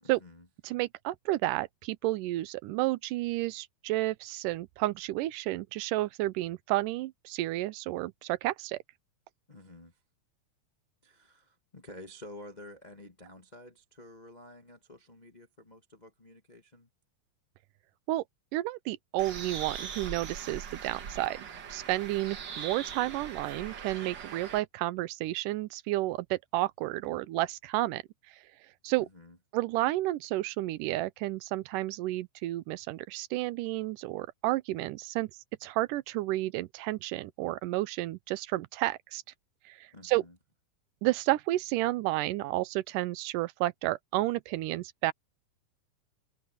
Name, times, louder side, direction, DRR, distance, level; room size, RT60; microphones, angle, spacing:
voice 1, 0.0-0.5 9.5-10.0 11.0-16.9 29.0-29.4 39.9-40.3, left 1 dB, 65° left, 0.4 m, -50 dB
voice 2, 0.6-8.8 18.1-18.2 18.5-28.0 28.8-29.1 29.5-35.3 35.6-39.2 39.7-40.2 41.0-45.1, right 17 dB, 85° right, 2.2 m, -31 dB
Bird, 19.2-24.6, right 7 dB, 50° right, 1.4 m, -41 dB
omnidirectional pair, 3.7 m